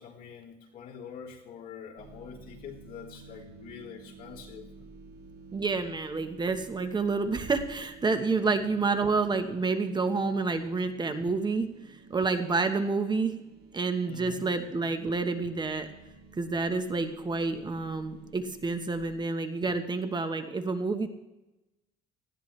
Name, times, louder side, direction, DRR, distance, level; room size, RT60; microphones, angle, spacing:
voice 1, 0.0-4.6 14.1-14.5, left 7 dB, 60° left, -3 dB, 3.5 m, -45 dB
sound 1, 2.0-19.2, right 4 dB, 80° right, 2.1 m, -52 dB
voice 2, 5.5-11.7 12.1-13.4 13.7-15.9 16.4-21.1, right 4 dB, 25° right, 8 dB, 1.3 m, -29 dB
19.0 x 15.0 x 3.3 m, 1.0 s
cardioid pair, 110°, 17 cm